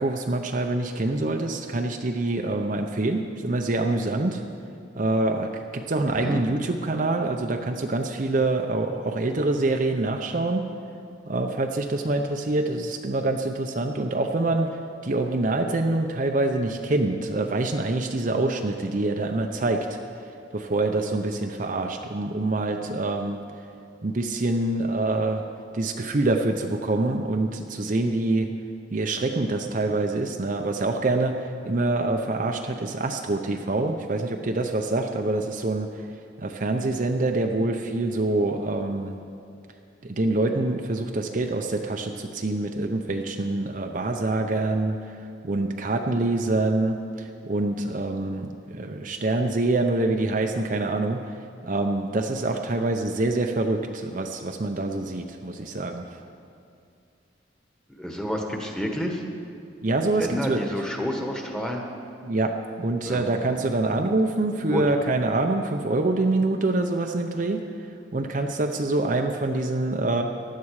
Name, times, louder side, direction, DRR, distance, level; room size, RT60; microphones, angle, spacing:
voice 1, 0.0-4.4 4.9-10.7 11.3-20.0 20.5-23.4 24.0-25.4 25.7-28.5 28.9-36.0 36.4-39.2 40.0-51.2 51.6-56.1 59.8-60.6 62.2-67.6 68.1-70.2, right 2 dB, 45° right, 4 dB, 0.6 m, -25 dB
voice 2, 6.1-6.4 57.9-59.2 60.2-61.9 63.0-63.6 64.7-64.8, equal, 5° left, 1 dB, 1.3 m, -30 dB
16.0 x 11.5 x 4.8 m, 2.4 s
head